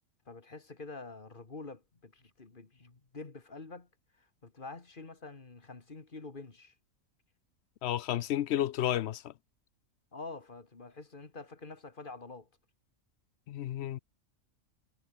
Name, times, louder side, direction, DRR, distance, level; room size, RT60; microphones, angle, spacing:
voice 1, 0.3-3.9 4.2-6.7 10.1-12.5, left 3 dB, 40° left, 2.1 m, -47 dB
voice 2, 7.8-9.3 13.5-14.0, left 12 dB, 65° left, 0.7 m, -31 dB
omnidirectional pair, 1.4 m